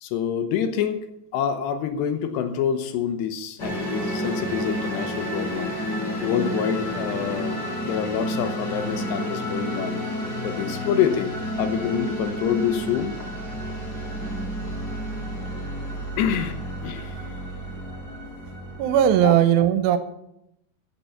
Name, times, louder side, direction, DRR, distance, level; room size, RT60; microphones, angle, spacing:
voice 1, 0.0-1.0 1.3-5.7 6.2-10.0 10.4-13.1 16.2-16.6 16.8-17.3 19.2-19.3, left 8 dB, 85° left, 8 dB, 3.1 m, -27 dB
sound 1, 3.6-19.3, equal, 25° left, 3.1 m, -30 dB
voice 2, 18.5-20.0, right 10 dB, 90° right, 9 dB, 2.9 m, -19 dB
15.5 x 6.9 x 5.8 m, 0.81 s
omnidirectional pair, 4.9 m